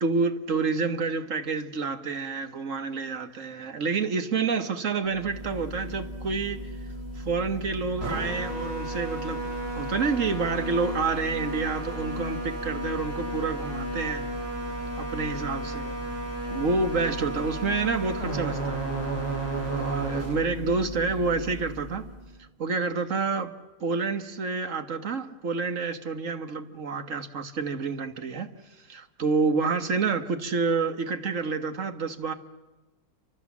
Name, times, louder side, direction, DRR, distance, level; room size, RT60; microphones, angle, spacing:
voice 1, 0.0-6.7 7.2-14.3 15.0-16.0 16.5-18.9 19.7-22.1 22.4-23.5 23.8-28.5 28.8-32.3, right 4 dB, 55° right, 1.9 m, -28 dB
sound 1, 5.1-22.3, right 1 dB, 15° right, 7.5 m, -33 dB
29.5 x 25.0 x 7.3 m
omnidirectional pair, 1.7 m